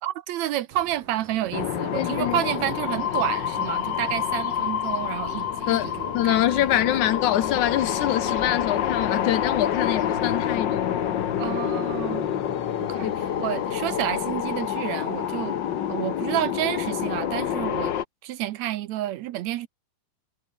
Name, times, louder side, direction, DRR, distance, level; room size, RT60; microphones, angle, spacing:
voice 1, 0.0-6.6 11.4-12.3 12.8-15.6 15.9-17.9 18.2-19.7, right 13 dB, 70° right, 1.8 m, -30 dB
sound 1, 0.7-10.6, right 7 dB, 90° right, 5.3 m, -45 dB
sound 2, 1.5-18.0, left 9 dB, 90° left, 0.9 m, -27 dB
voice 2, 1.9-2.4 5.7-11.0 13.0-13.2, left 12 dB, 65° left, 2.6 m, -25 dB
sound 3, 7.8-14.8, left 2 dB, 40° left, 9.1 m, -45 dB
omnidirectional pair, 3.8 m